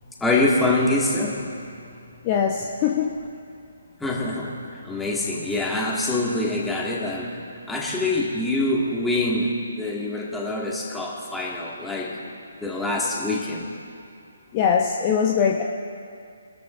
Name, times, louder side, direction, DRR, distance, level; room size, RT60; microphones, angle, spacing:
voice 1, 0.2-1.4 4.0-12.2 12.6-13.7, left 2 dB, 5° left, -4 dB, 2.2 m, -25 dB
voice 2, 2.2-3.2 14.5-15.6, left 7 dB, 30° left, 0 dB, 0.9 m, -21 dB
24.5 x 13.0 x 2.7 m, 2.4 s
figure-of-eight pair, 140°, 0 cm